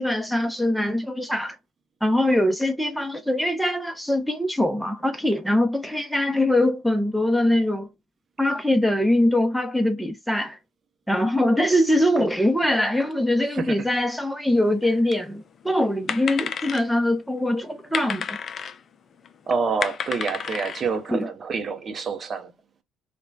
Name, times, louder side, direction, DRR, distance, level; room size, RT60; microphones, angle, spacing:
voice 1, 0.0-1.6 2.0-7.9 8.4-10.6 11.1-18.4 21.1-21.3, left 1 dB, ahead, 0.6 m, -22 dB
sound 1, 14.6-14.7 14.8-15.4 15.7-17.1 17.7-18.8 19.2-19.3 19.6-21.1, left 7 dB, 50° left, 0.3 m, -31 dB
voice 2, 19.5-22.5, right 5 dB, 45° right, 0.6 m, -27 dB
3.0 x 2.2 x 2.3 m
hypercardioid pair, 55°, 0 cm